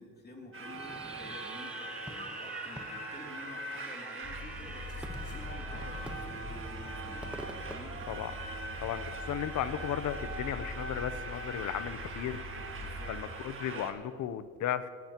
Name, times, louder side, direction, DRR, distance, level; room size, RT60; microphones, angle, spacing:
voice 1, 0.0-7.3 7.6-8.0 12.8-13.2, left 2 dB, 35° left, 0 dB, 2.8 m, -50 dB
sound 1, 0.5-13.9, right 3 dB, 45° right, 1.7 m, -42 dB
Fireworks, 0.7-8.8, right 1 dB, 5° right, 1.1 m, -47 dB
sound 2, 4.2-13.2, left 2 dB, 50° left, 2.0 m, -44 dB
voice 2, 8.8-12.4 13.1-14.9, left 10 dB, 75° left, 14 dB, 0.7 m, -35 dB
18.0 x 14.5 x 3.0 m, 2.1 s
cardioid pair, 90°, 30 cm